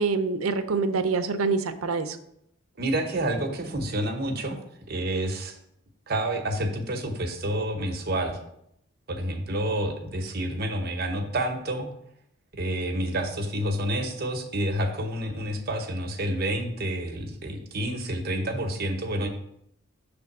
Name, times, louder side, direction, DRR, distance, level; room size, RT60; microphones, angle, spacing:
voice 1, 0.0-2.2, right 4 dB, 80° right, 10 dB, 0.6 m, -25 dB
voice 2, 2.8-4.6 4.9-5.5 6.1-8.4 9.1-11.9 12.5-19.3, right 1 dB, 45° right, 3 dB, 0.9 m, -29 dB
6.6 x 3.4 x 5.9 m, 0.75 s
head